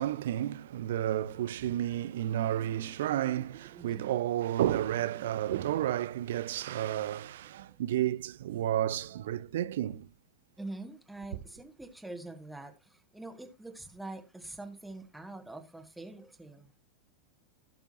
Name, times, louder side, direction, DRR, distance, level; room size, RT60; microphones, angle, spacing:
voice 1, 0.0-10.1, right 12 dB, 55° right, 0.6 m, -31 dB
voice 2, 3.8-4.1 10.6-16.7, right 2 dB, 5° right, 2.0 m, -45 dB
sound 1, 7.4-7.8, right 13 dB, 40° right, 1.5 m, -57 dB
16.5 x 6.9 x 2.9 m
figure-of-eight pair, 90°, 0 cm